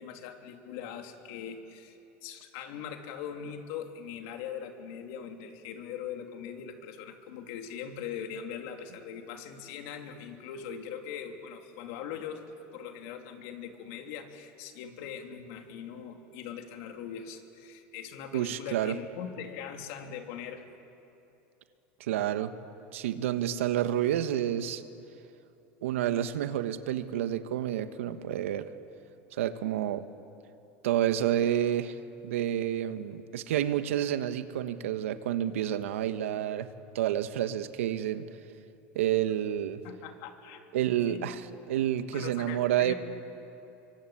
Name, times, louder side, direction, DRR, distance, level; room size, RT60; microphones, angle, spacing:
voice 1, 0.0-12.4 12.7-20.6 39.8-41.3 42.1-42.9, left 8 dB, 65° left, 4 dB, 3.1 m, -41 dB
voice 2, 18.3-19.0 22.0-22.5 22.9-24.8 25.8-28.7 29.4-30.1 30.8-36.7 36.9-38.3 38.9-39.8 40.7-41.4 41.7-42.9, right 11 dB, 90° right, 10 dB, 1.4 m, -29 dB
25.0 x 24.0 x 8.8 m, 2.9 s
supercardioid pair, 120°, 7 cm